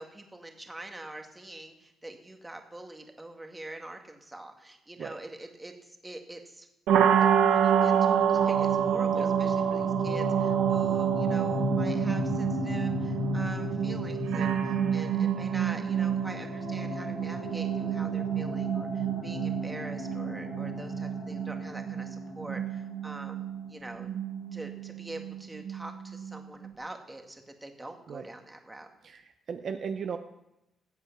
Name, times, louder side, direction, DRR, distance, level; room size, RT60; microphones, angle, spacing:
voice 1, 0.0-6.7 7.2-24.1 24.5-28.9, right 1 dB, 15° right, 4 dB, 1.9 m, -44 dB
sound 1, 6.9-26.7, right 9 dB, 80° right, 1.2 m, -28 dB
sound 2, 8.1-23.8, left 3 dB, 75° left, 4.7 m, -37 dB
voice 2, 29.5-30.2, right 6 dB, 55° right, 7 dB, 0.7 m, -35 dB
15.0 x 8.0 x 5.9 m, 0.90 s
cardioid pair, 90°, 0 cm